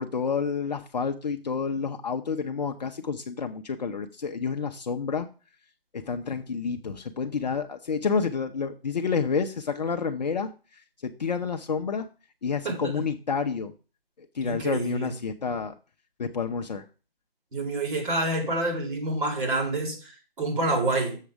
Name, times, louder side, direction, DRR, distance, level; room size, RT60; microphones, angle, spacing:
voice 1, 0.0-5.3 5.9-10.5 11.0-12.1 12.4-13.7 14.2-15.7 16.2-16.8, left 5 dB, 45° left, 0.6 m, -29 dB
voice 2, 12.6-13.0 14.4-15.1 17.5-21.2, right 2 dB, 55° right, 4.3 m, -28 dB
7.2 x 6.6 x 4.9 m
figure-of-eight pair, 160°, 30 cm